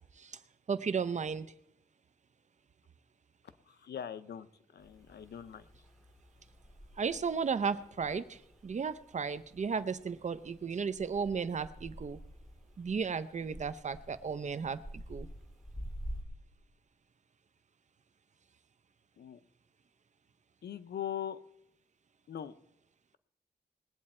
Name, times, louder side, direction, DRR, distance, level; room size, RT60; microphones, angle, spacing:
voice 1, 0.7-1.5 7.0-8.4 8.6-12.2 12.8-14.8 15.1-15.3, right 5 dB, 45° right, 13 dB, 0.7 m, -34 dB
voice 2, 3.8-4.5 4.7-5.6 19.2-19.4 20.6-21.4 22.3-22.5, left 9 dB, 85° left, 13 dB, 0.7 m, -40 dB
sound 1, 4.8-16.2, equal, ahead, 2.2 m, -49 dB
20.5 x 8.4 x 4.4 m, 0.79 s
wide cardioid pair, 125°, 17 cm